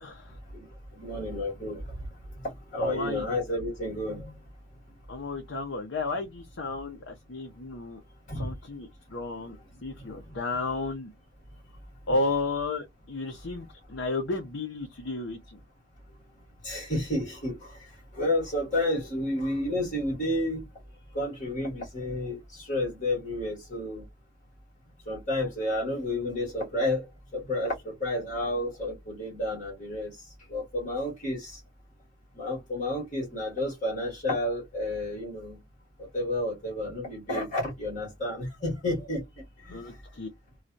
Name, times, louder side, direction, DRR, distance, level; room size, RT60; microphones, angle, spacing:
voice 1, 0.0-0.4 2.8-3.3 5.1-8.0 8.3-9.6 9.8-11.1 12.1-15.6 39.7-40.3, left 3 dB, 80° left, 0.7 m, -33 dB
voice 2, 1.0-1.8 2.7-4.3 8.3-8.5 16.6-17.5 18.1-20.6 21.1-24.0 25.1-27.0 27.3-30.1 30.5-31.6 32.4-35.6 36.1-39.2 39.7-39.8, left 1 dB, 40° left, 1.9 m, -30 dB
3.1 x 2.4 x 2.6 m
head